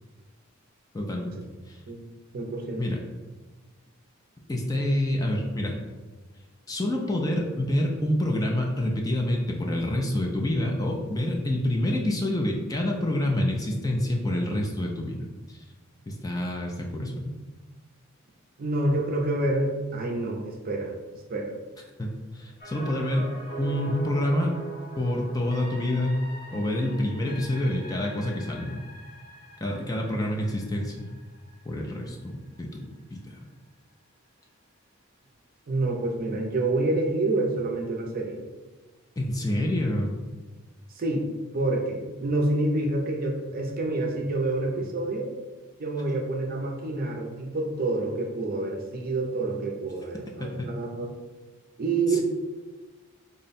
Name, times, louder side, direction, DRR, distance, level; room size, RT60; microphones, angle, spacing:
voice 1, 0.9-1.4 1.7-1.8 2.8-3.0 4.5-5.8 6.7-15.6 16.1-17.2 22.0-23.3 23.6-24.5 25.0-26.2 26.5-28.8 29.6-31.1 31.7-33.5 39.2-40.1 50.4-50.7 52.1-52.2, left 1 dB, 15° left, 0 dB, 0.4 m, -27 dB
voice 2, 2.3-2.9 18.6-20.9 21.3-21.5 35.7-38.4 40.9-41.3 41.5-45.3 45.8-50.5 50.7-51.1 51.8-52.2, right 2 dB, 45° right, 2 dB, 0.5 m, -27 dB
sound 1, 22.6-32.6 33.0-33.1, right 3 dB, 45° left, 0.8 m, -42 dB
3.7 x 2.2 x 4.0 m, 1.3 s
head